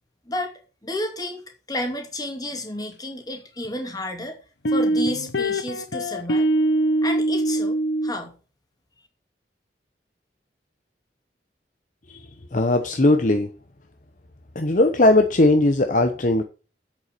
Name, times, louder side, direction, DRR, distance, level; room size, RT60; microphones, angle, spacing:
voice 1, 0.8-1.4 1.7-4.4 4.7-6.5 7.0-7.8 8.0-8.3, left 1 dB, 20° left, 2.5 m, -31 dB
sound 1, 3.6-3.7 4.6-8.1, right 1 dB, 85° left, 1.1 m, -22 dB
voice 2, 12.1-13.5 14.5-16.4, left 2 dB, 45° left, 1.0 m, -19 dB
8.1 x 7.1 x 6.7 m
head